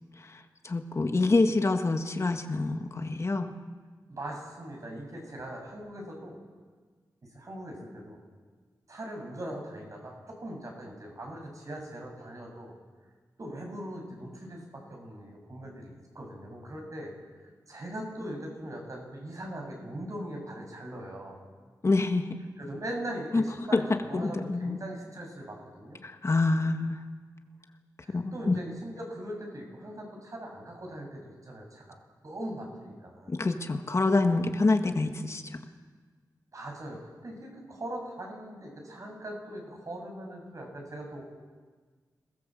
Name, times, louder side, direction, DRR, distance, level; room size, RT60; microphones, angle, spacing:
voice 1, 0.3-3.5 21.8-22.4 23.3-23.4 23.7-23.8 24.1-24.8 26.0-27.0 28.1-28.6 33.3-35.4, left 3 dB, 45° left, 5 dB, 1.7 m, -26 dB
voice 2, 4.1-6.4 7.3-8.2 8.9-12.7 13.4-17.1 17.7-21.4 22.6-26.0 28.0-32.0 32.2-33.3 36.5-41.2, right 1 dB, 50° right, 1 dB, 7.4 m, -40 dB
27.5 x 20.0 x 7.7 m, 1.5 s
wide cardioid pair, 95°, 7 cm